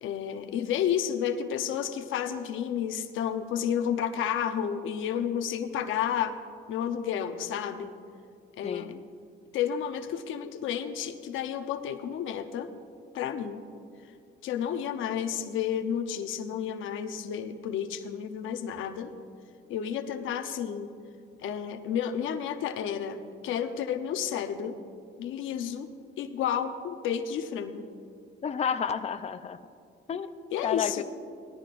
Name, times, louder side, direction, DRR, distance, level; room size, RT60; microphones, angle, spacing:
voice 1, 0.0-6.3 6.7-7.9 8.6-8.9 9.5-12.7 13.1-13.6 14.4-19.1 19.7-20.9 21.4-23.2 23.4-24.8 25.2-25.9 26.2-27.9 30.5-31.0, left 8 dB, 85° left, 7 dB, 0.8 m, -31 dB
voice 2, 8.6-9.0 28.4-29.6 30.1-30.3 30.6-31.0, left 7 dB, 35° left, 9 dB, 0.5 m, -31 dB
18.5 x 14.0 x 2.5 m, 2.3 s
cardioid pair, 90°, 20 cm